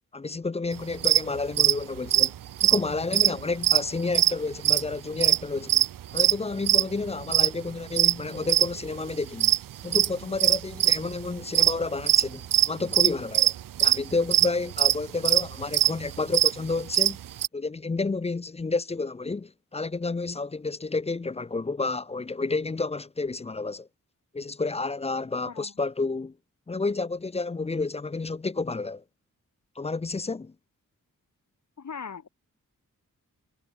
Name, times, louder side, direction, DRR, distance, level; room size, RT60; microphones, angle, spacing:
voice 1, 0.1-2.3 2.6-5.9 6.1-9.5 9.8-13.5 13.8-17.2 17.5-23.9 24.3-26.3 26.7-29.0 29.8-30.5, left 3 dB, 20° left, 0.4 m, -30 dB
sound 1, 0.9-1.2 1.6-1.8 2.1-3.8 4.1-4.3 4.6-4.9 5.2-5.9 6.2-6.3 6.7-7.5 7.9-8.7 9.0-11.1 11.4-11.7 12.0-17.5, right 12 dB, 80° right, 0.5 m, -21 dB
sound 2, 8.2-11.3 11.6-11.7 12.1-12.2, right 4 dB, 35° right, 7.8 m, -58 dB
voice 2, 25.4-25.7 31.8-32.3, left 6 dB, 60° left, 2.4 m, -39 dB
wide cardioid pair, 160°, 33 cm